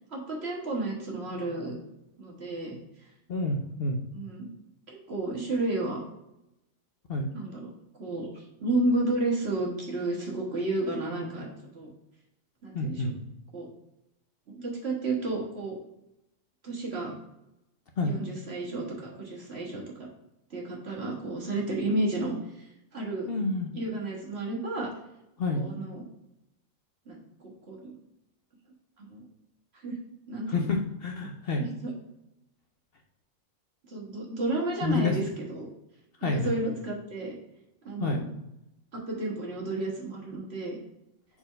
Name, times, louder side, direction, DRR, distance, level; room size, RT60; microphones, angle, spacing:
voice 1, 0.1-1.8 2.2-2.8 4.1-4.5 4.9-6.0 7.3-7.7 8.0-11.5 11.7-11.9 12.6-13.1 13.5-13.7 14.5-15.8 16.6-17.1 18.0-20.1 20.5-23.3 23.7-24.9 25.5-26.0 27.1-27.9 29.0-29.2 29.8-30.0 30.3-30.7 31.2-31.3 31.6-31.9 33.9-35.7 36.2-37.3 37.8-38.2 38.9-40.8, right 2 dB, 50° right, -2 dB, 1.8 m, -32 dB
voice 2, 3.3-4.0 7.1-7.3 12.7-13.1 18.0-18.1 23.3-23.7 25.4-25.7 30.5-31.6 34.8-35.2 36.2-36.5 38.0-38.2, left 3 dB, 55° left, 2 dB, 0.8 m, -28 dB
4.4 x 4.4 x 5.1 m, 0.87 s
omnidirectional pair, 1.4 m